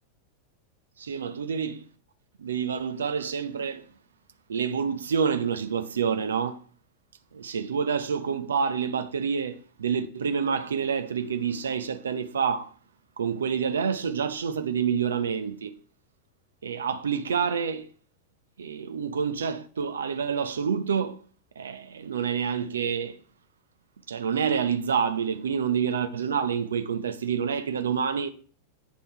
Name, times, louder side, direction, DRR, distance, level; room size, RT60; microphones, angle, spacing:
voice 1, 1.0-1.9 2.4-3.9 4.5-6.6 7.3-12.7 13.2-15.8 16.6-17.9 18.6-21.2 21.6-23.2 24.1-28.3, right 6 dB, 70° right, 0.8 m, -28 dB
9.4 x 5.5 x 4.3 m
figure-of-eight pair, 90°, 0 cm